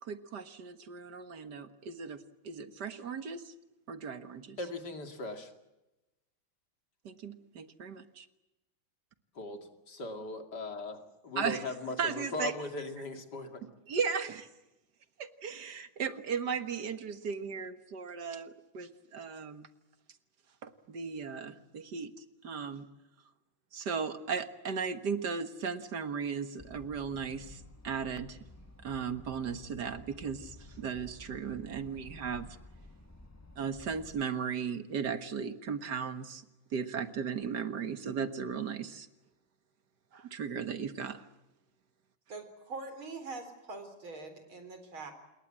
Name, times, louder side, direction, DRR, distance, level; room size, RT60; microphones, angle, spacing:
voice 1, 0.0-2.2 2.4-3.5 3.9-4.6 7.0-8.3 11.4-11.6 12.0-12.5 13.9-14.5 15.2-19.7 20.6-22.9 23.7-28.4 28.8-32.5 33.6-36.5 36.7-39.1 40.1-41.3, right 6 dB, 55° right, 10 dB, 2.0 m, -36 dB
voice 2, 4.6-5.5 9.3-13.7, left 2 dB, 55° left, 6 dB, 2.9 m, -39 dB
sound 1, 26.6-34.2, left 1 dB, 10° left, 0.8 m, -53 dB
voice 3, 42.3-45.1, right 3 dB, 90° right, 8 dB, 4.8 m, -43 dB
28.0 x 21.0 x 7.5 m, 0.99 s
omnidirectional pair, 2.2 m